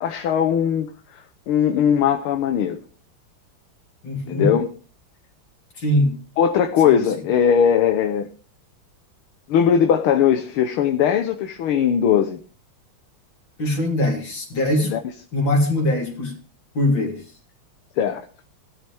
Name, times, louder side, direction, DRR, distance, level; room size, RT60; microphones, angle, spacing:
voice 1, 0.0-2.8 4.3-4.7 6.4-8.3 9.5-12.4 14.8-15.0 18.0-18.2, left 8 dB, 80° left, 1.9 m, -19 dB
voice 2, 4.0-4.6 5.8-6.2 6.8-7.0 13.6-14.9 15.3-16.3 16.7-17.2, left 1 dB, 60° left, 4.2 m, -22 dB
17.0 x 12.0 x 3.6 m
omnidirectional pair, 2.3 m